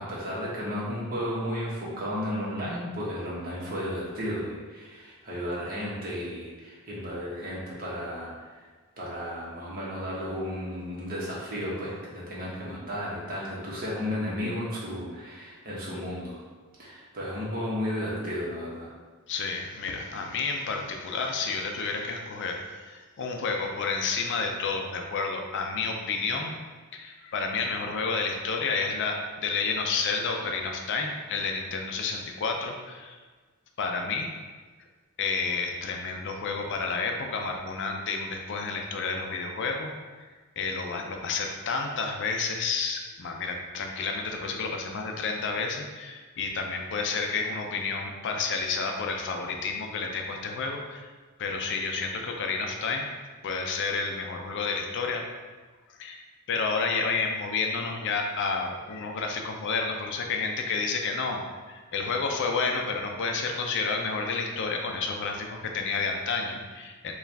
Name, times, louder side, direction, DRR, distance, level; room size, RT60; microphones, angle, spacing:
voice 1, 0.0-8.6 9.0-16.4 16.8-18.9, equal, 45° right, -6 dB, 1.2 m, -33 dB
voice 2, 19.3-26.5 26.9-33.2 33.8-34.3 35.2-40.3 40.6-51.1 51.4-53.1 53.4-55.3 56.0-56.2 56.5-61.4 61.7-67.1, left 4 dB, 55° left, 3 dB, 0.4 m, -30 dB
4.6 x 2.4 x 3.3 m, 1.4 s
head